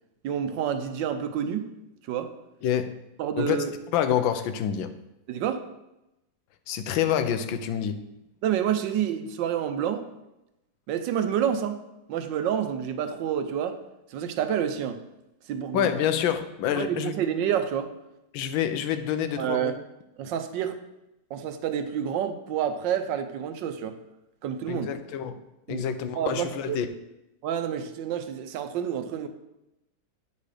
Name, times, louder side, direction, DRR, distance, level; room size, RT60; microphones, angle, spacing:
voice 1, 0.2-1.7 2.1-2.3 3.2-3.7 5.3-5.6 8.4-10.1 10.9-11.8 12.1-13.8 14.1-15.0 15.5-15.9 16.7-17.9 19.4-19.7 20.2-20.8 21.3-24.0 24.4-24.9 25.7-25.9 26.2-26.8 27.4-29.3, right 9 dB, 75° right, 9 dB, 1.3 m, -28 dB
voice 2, 2.6-3.0 3.4-3.6 3.9-4.9 6.7-8.0 15.7-17.1 18.3-19.7 24.7-25.4 25.7-26.9, left 9 dB, 85° left, 9 dB, 1.4 m, -27 dB
9.5 x 4.1 x 4.9 m, 0.91 s
omnidirectional pair, 2.1 m